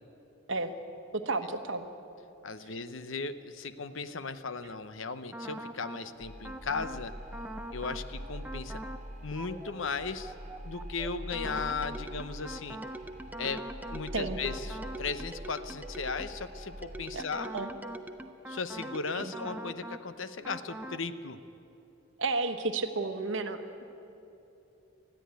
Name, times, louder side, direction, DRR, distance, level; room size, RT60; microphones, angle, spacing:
voice 1, 1.1-1.9 14.1-14.4 17.1-17.2 17.5-17.7 19.1-19.3 22.2-23.6, right 3 dB, 70° right, 8 dB, 1.2 m, -32 dB
voice 2, 2.4-7.1 7.7-8.8 9.2-10.3 10.6-12.8 13.4-13.7 13.9-17.5 18.5-21.4, left 4 dB, 75° left, 12 dB, 0.8 m, -36 dB
sound 1, 5.3-6.0 6.4-7.0 7.3-8.0 8.4-9.0 9.4-16.4 16.8-20.0 20.4-21.0, right 1 dB, 10° right, 0.6 m, -43 dB
sound 2, 6.2-17.1, equal, 35° right, 5.2 m, -44 dB
20.5 x 13.5 x 9.5 m, 3.0 s
head